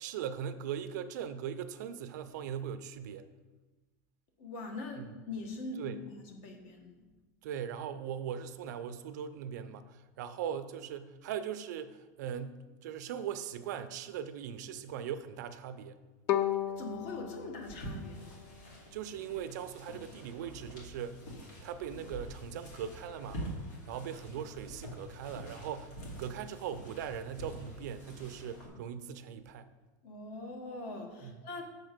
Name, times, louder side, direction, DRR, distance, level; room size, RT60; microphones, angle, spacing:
voice 1, 0.0-3.3 5.0-5.1 5.8-6.0 7.4-16.0 18.9-21.2 21.6-23.4 23.9-29.7 31.2-31.4, right 8 dB, 80° right, 11 dB, 0.6 m, -40 dB
voice 2, 4.4-6.0 6.3-7.1 16.8-18.4 30.0-31.6, left 2 dB, 55° left, 3 dB, 1.4 m, -42 dB
Bowed string instrument, 16.3-19.3, left 11 dB, 30° left, 0.3 m, -35 dB
sound 1, 17.6-28.7, right 1 dB, 85° left, 2.8 m, -46 dB
6.6 x 4.4 x 6.6 m, 1.2 s
supercardioid pair, 165°, 9 cm